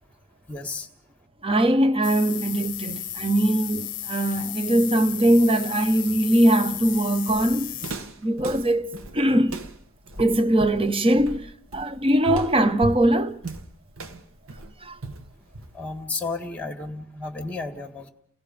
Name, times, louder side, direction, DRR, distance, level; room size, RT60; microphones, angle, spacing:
voice 1, 0.5-0.9 15.7-18.1, left 3 dB, 5° left, 1.9 m, -32 dB
voice 2, 1.4-7.7 8.2-8.9 9.1-9.6 10.2-13.4 14.8-15.0, right 1 dB, 25° right, 1.1 m, -21 dB
sound 1, 2.0-7.9, left 12 dB, 40° left, 0.8 m, -34 dB
Walk footsteps, 6.7-16.0, right 2 dB, 70° right, 1.9 m, -37 dB
30.0 x 18.0 x 5.2 m
head